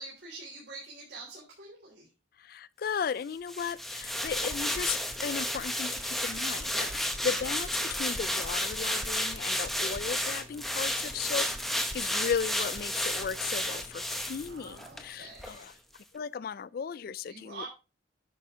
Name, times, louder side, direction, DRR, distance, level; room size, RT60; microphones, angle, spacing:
voice 1, 0.0-2.1 6.7-7.0 11.1-11.3 14.5-15.8 17.3-17.7, right 3 dB, 60° right, 3.4 m, -46 dB
voice 2, 2.4-15.8 16.1-17.7, left 6 dB, 50° left, 0.3 m, -36 dB
sound 1, 3.5-15.1 15.4-15.6, equal, ahead, 0.8 m, -32 dB
9.9 x 6.4 x 3.7 m
head